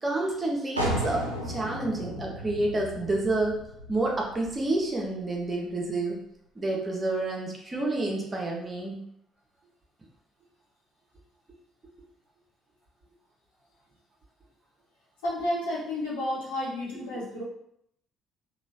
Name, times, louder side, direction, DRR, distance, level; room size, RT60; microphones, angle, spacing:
voice 1, 0.0-3.6 3.9-6.2 6.6-9.0, right 2 dB, 30° right, -1 dB, 0.8 m, -29 dB
sound 1, 0.8-6.3, equal, 85° right, 0.4 m, -35 dB
voice 2, 15.2-17.4, left 1 dB, 70° left, -4 dB, 0.8 m, -31 dB
3.0 x 2.3 x 2.7 m, 0.71 s
figure-of-eight pair, 45°, 0 cm